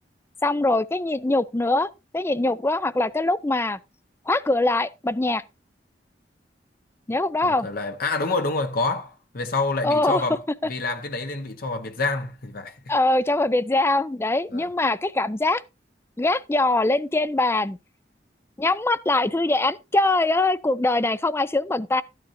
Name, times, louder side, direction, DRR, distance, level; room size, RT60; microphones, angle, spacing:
voice 1, 0.4-3.8 4.3-5.4 7.1-7.7 9.8-10.2 12.9-15.6 16.2-17.8 18.6-22.0, left 2 dB, 15° left, 0.5 m, -22 dB
voice 2, 7.4-12.8 14.5-14.7, left 3 dB, 60° left, 1.1 m, -27 dB
13.5 x 9.5 x 2.6 m
head